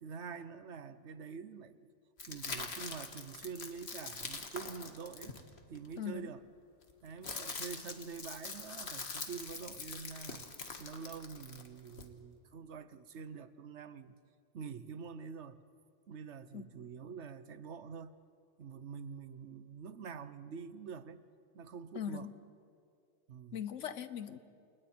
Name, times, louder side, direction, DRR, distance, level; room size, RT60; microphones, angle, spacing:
voice 1, 0.0-1.9 2.3-5.4 5.7-6.4 7.0-10.5 10.8-14.1 14.5-15.6 16.1-18.2 18.6-21.2 21.5-22.3 23.3-23.6, right 6 dB, 70° right, 13 dB, 1.2 m, -46 dB
sound 1, 2.2-5.9 6.8-12.1, left 4 dB, 60° left, 1.9 m, -44 dB
voice 2, 6.0-6.3 16.5-16.7 21.9-22.3 23.5-24.4, left 8 dB, 90° left, 12 dB, 1.3 m, -40 dB
29.5 x 27.5 x 4.5 m, 2.4 s
omnidirectional pair, 1.2 m